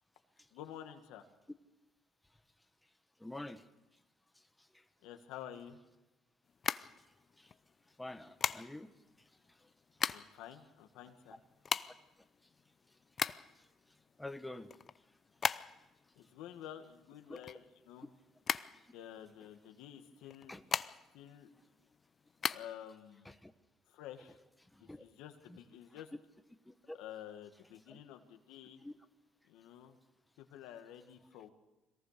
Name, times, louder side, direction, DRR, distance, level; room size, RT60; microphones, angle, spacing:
voice 1, 0.5-1.3 5.0-5.8 10.1-11.4 16.2-18.1 18.9-20.6 21.1-21.5 22.5-23.3 23.9-24.4 24.8-26.1 26.9-28.8 29.4-30.0 30.4-31.5, left 10 dB, 90° left, 6 dB, 1.8 m, -50 dB
voice 2, 3.2-3.6 7.4-7.5 8.0-8.9 14.2-14.7 15.5-15.6 17.3-17.4 20.5-20.6 23.4-23.5 24.9-25.0 26.7-27.0 27.9-28.0 28.8-28.9, left 1 dB, 10° left, 8 dB, 1.2 m, -46 dB
sound 1, 6.5-7.5 8.4-9.0 9.6-10.4 10.7-10.8 11.0-13.7 14.1-16.0 16.2-18.1 18.4-19.4 20.2-21.2 21.6-22.6, left 6 dB, 45° left, 0.6 m, -37 dB
22.5 x 18.0 x 6.7 m, 1.0 s
cardioid pair, 85°, 0 cm